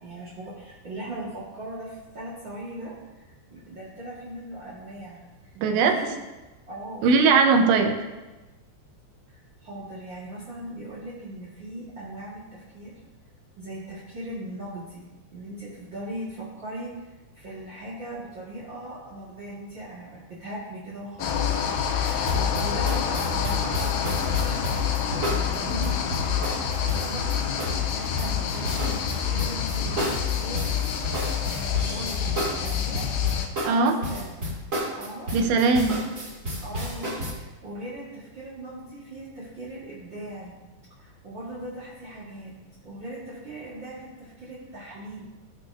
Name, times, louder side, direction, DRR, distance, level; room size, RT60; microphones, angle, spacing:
voice 1, 0.0-6.1 6.7-7.4 9.3-12.9 13.6-21.5 21.8-30.8 31.5-33.1 33.6-34.5 35.0-35.3 36.6-40.5 41.0-42.5 42.8-45.3, right 1 dB, 70° right, -8 dB, 1.1 m, -39 dB
voice 2, 5.6-6.0 7.0-8.0 33.7-33.9 35.3-36.0, right 4 dB, 85° right, 5 dB, 3.1 m, -19 dB
sound 1, 21.2-33.5, left 8 dB, 80° left, 2.6 m, -27 dB
sound 2, 22.0-37.3, equal, 30° right, 1.6 m, -32 dB
17.0 x 6.5 x 2.7 m, 1.1 s
omnidirectional pair, 5.4 m